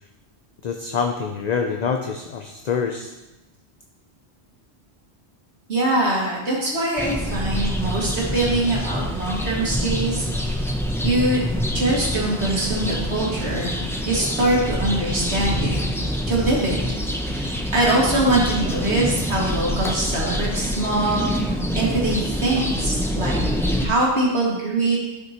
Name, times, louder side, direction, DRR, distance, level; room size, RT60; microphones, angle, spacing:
voice 1, 0.6-3.1, left 6 dB, 50° left, 4 dB, 0.5 m, -25 dB
voice 2, 5.7-10.8 11.0-11.4 11.7-15.7 16.3-16.8 17.2-21.5 21.7-25.0, right 2 dB, 75° right, -5 dB, 2.3 m, -23 dB
sound 1, 7.0-23.9, equal, 5° left, 0.4 m, -26 dB
11.0 x 5.9 x 2.9 m, 1.0 s
omnidirectional pair, 1.1 m